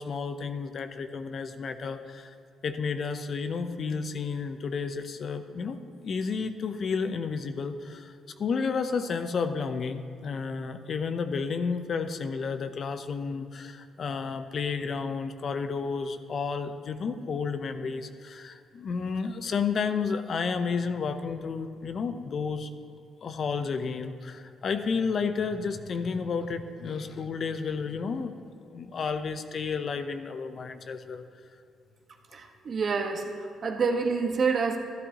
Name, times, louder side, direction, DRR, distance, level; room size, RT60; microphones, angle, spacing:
voice 1, 0.0-2.3 2.6-5.8 6.0-8.1 8.4-22.7 23.2-28.4 28.6-31.2, left 5 dB, 50° left, 9 dB, 0.6 m, -31 dB
voice 2, 32.3-34.8, right 5 dB, 50° right, 3 dB, 1.2 m, -27 dB
12.5 x 12.5 x 2.8 m, 2.4 s
cardioid pair, 90°, 0 cm